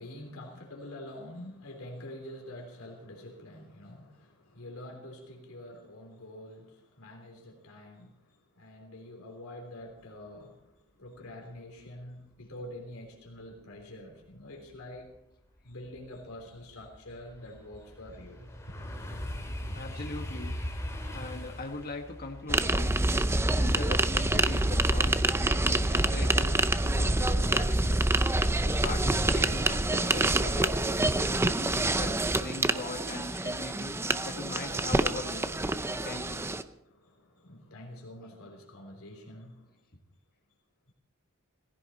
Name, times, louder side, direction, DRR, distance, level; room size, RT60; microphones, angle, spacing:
voice 1, 0.0-15.1 15.6-18.5 18.8-19.1 27.1-27.2 36.8-39.7, left 1 dB, 75° left, 3.4 m, -46 dB
sound 1, 15.1-15.2 15.7-24.8 25.2-25.6, equal, 15° left, 2.7 m, -40 dB
voice 2, 19.7-23.1 23.5-28.0 28.6-30.8 31.9-34.0 34.2-35.5 36.0-36.4 38.2-38.3, left 3 dB, 45° left, 1.7 m, -40 dB
sound 2, 22.5-36.6, right 2 dB, 10° right, 0.6 m, -27 dB
sound 3, 26.3-26.6 27.3-27.7 28.3-28.6 29.5-29.8 30.5-30.8 31.4-31.5 31.7-31.8, equal, 70° right, 2.3 m, -45 dB
18.0 x 16.0 x 4.2 m
head